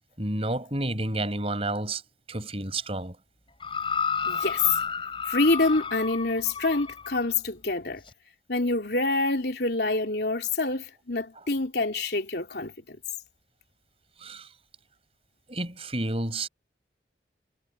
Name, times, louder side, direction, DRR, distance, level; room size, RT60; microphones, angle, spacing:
voice 1, 0.2-2.0 2.3-3.2 14.2-14.5 15.5-16.5, right 2 dB, 35° right, 6.1 m, -30 dB
sound 1, 3.6-7.3 8.1-8.2, left 6 dB, 30° left, 6.5 m, -31 dB
voice 2, 4.3-4.7 5.3-8.0 8.5-13.0, left 3 dB, 65° left, 3.5 m, -26 dB
head